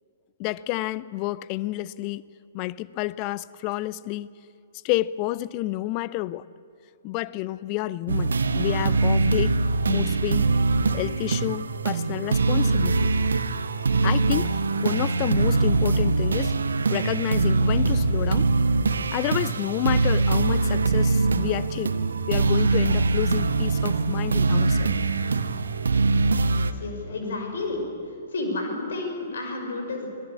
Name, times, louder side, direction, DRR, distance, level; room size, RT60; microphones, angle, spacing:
voice 1, 0.4-2.2 2.5-4.3 4.8-6.5 7.0-9.5 9.9-10.5 10.9-13.1 14.0-16.5 16.9-18.5 19.1-21.9 22.2-24.9, left 17 dB, 30° left, 19 dB, 0.6 m, -29 dB
sound 1, 8.1-26.7, right 3 dB, 65° right, 1.1 m, -23 dB
voice 2, 26.4-27.8 28.3-30.1, left 2 dB, 60° left, 3 dB, 5.7 m, -31 dB
25.5 x 19.0 x 8.6 m, 2.6 s
figure-of-eight pair, 115°, 0 cm